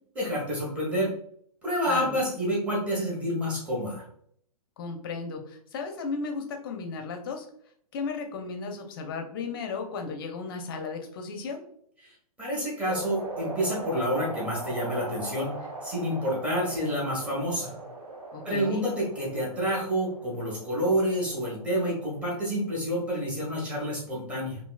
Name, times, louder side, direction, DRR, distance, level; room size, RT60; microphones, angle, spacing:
voice 1, 0.1-1.1 1.6-4.0 12.4-15.5 15.8-17.7 18.4-24.6, equal, 5° right, -6 dB, 1.0 m, -28 dB
voice 2, 4.8-7.5 7.9-11.6 18.3-18.9, left 4 dB, 35° left, 4 dB, 0.5 m, -35 dB
sound 1, 12.9-22.7, right 2 dB, 80° right, 0.9 m, -40 dB
2.9 x 2.7 x 2.2 m, 0.64 s
figure-of-eight pair, 120°, 19 cm